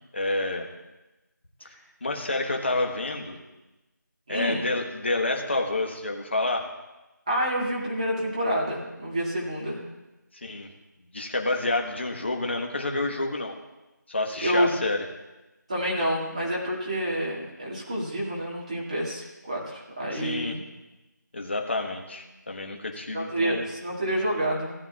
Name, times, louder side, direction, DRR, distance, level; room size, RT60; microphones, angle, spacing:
voice 1, 0.1-0.6 1.6-1.7 2.0-3.4 4.3-6.7 10.3-10.7 11.1-13.5 14.1-15.0 20.1-20.6 21.3-23.7, left 2 dB, 35° left, 3 dB, 1.3 m, -29 dB
voice 2, 4.3-4.7 7.3-9.8 14.4-14.7 15.7-20.6 23.1-24.7, equal, 20° right, -6 dB, 2.1 m, -28 dB
17.5 x 9.2 x 2.4 m, 1.0 s
figure-of-eight pair, 175°, 10 cm